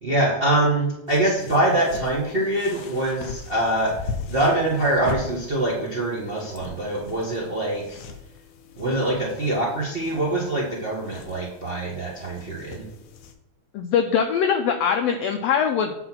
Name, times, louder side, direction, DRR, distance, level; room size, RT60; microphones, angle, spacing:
voice 1, 0.0-8.0 8.8-12.8, right 1 dB, 70° right, -4 dB, 0.5 m, -24 dB
sound 1, 1.1-13.3, left 4 dB, 70° left, 1.8 m, -40 dB
voice 2, 13.7-16.0, left 7 dB, 90° left, 6 dB, 1.4 m, -22 dB
9.0 x 3.9 x 6.0 m, 0.90 s
omnidirectional pair, 3.5 m